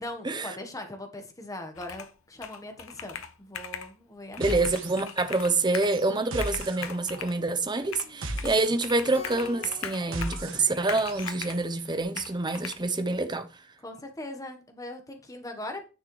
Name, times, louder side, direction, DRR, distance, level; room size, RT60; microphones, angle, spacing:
voice 1, 0.0-4.7 13.8-15.8, left 1 dB, 15° left, 1.3 m, -40 dB
Computer keyboard, 1.7-2.2 2.4-3.9 4.3-6.0 6.3-7.4 7.9-8.6 8.8-10.5 10.9-11.6 12.2-12.7, left 7 dB, 90° left, 0.9 m, -40 dB
voice 2, 4.4-13.4, right 2 dB, 20° right, 0.8 m, -27 dB
sound 1, 4.4-5.3 5.6-11.6, right 2 dB, 65° right, 1.6 m, -38 dB
Keyboard (musical), 9.1-11.8, left 2 dB, 40° left, 5.4 m, -48 dB
10.5 x 6.5 x 3.2 m
head